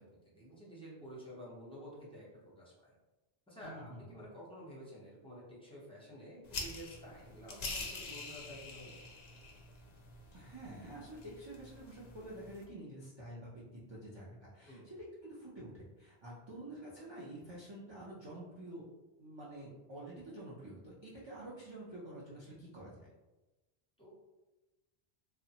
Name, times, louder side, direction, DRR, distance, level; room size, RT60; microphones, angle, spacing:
voice 1, 0.0-2.9 3.5-8.9 14.7-14.9 24.0-24.1, equal, 5° left, -6 dB, 0.6 m, -51 dB
voice 2, 3.6-4.1 10.3-18.8 19.2-23.1, right 1 dB, 40° right, -7 dB, 0.4 m, -48 dB
sound 1, 6.5-12.6, left 3 dB, 55° left, 0.5 m, -46 dB
2.9 x 2.0 x 2.8 m, 1.1 s
omnidirectional pair, 1.1 m